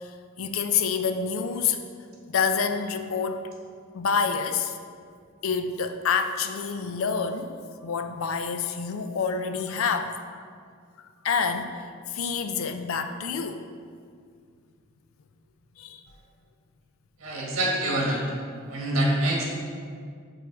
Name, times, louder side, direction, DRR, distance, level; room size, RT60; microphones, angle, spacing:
voice 1, 0.0-1.8 2.3-3.5 3.9-4.8 5.4-7.5 7.8-10.2 11.2-11.8 12.1-13.6 15.8-16.0, left 6 dB, 70° left, 8 dB, 0.4 m, -27 dB
voice 2, 17.2-18.2 18.7-19.4, right 1 dB, 80° right, -2 dB, 1.4 m, -25 dB
5.2 x 4.6 x 4.6 m, 2.1 s
head